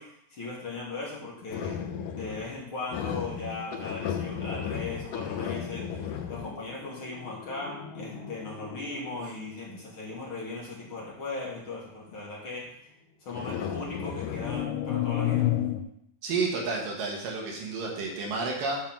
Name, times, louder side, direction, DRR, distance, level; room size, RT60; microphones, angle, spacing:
voice 1, 0.0-12.7 13.2-15.6, left 3 dB, 45° left, -4 dB, 2.1 m, -38 dB
sound 1, 1.5-2.6 2.9-9.8 10.7-11.0 13.3-15.8, left 10 dB, 75° left, 2.2 m, -33 dB
voice 2, 16.2-18.8, right 4 dB, 80° right, -1 dB, 3.1 m, -30 dB
9.3 x 3.9 x 5.9 m, 0.74 s
omnidirectional pair, 3.9 m